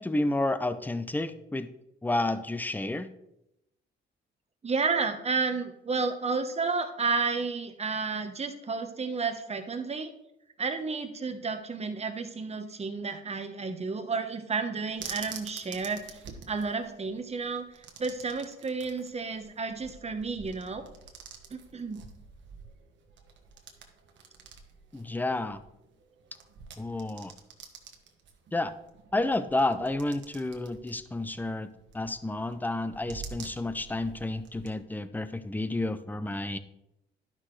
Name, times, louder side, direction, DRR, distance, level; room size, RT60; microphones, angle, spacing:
voice 1, 0.0-1.7 2.0-3.1 24.9-25.6 26.8-27.3 28.5-28.7 29.1-36.6, left 2 dB, 10° left, 12 dB, 0.6 m, -30 dB
voice 2, 4.6-10.1 10.6-16.0 16.5-17.6 18.0-20.8 21.5-22.0, right 4 dB, 30° right, 7 dB, 1.1 m, -31 dB
sound 1, 15.0-34.8, right 6 dB, 70° right, 1.3 m, -48 dB
11.5 x 5.9 x 3.2 m, 0.86 s
cardioid pair, 90°, 20 cm